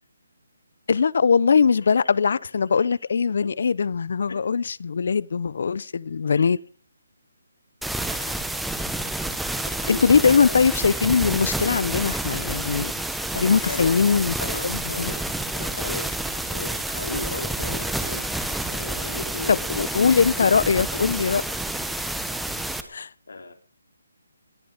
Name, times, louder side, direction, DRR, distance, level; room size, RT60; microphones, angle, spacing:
voice 1, 0.9-6.6 9.9-12.9 13.4-14.3 14.6-15.1 19.5-21.4 22.9-23.1, left 5 dB, 55° left, 0.8 m, -21 dB
sound 1, 7.8-22.8, right 1 dB, ahead, 1.1 m, -29 dB
voice 2, 8.1-8.5 9.4-10.6 13.3-14.6 14.9-18.2 18.7-19.6 20.4-20.8 23.3-23.5, left 3 dB, 75° left, 3.8 m, -36 dB
21.5 x 12.5 x 5.1 m
hypercardioid pair, 165°, 0 cm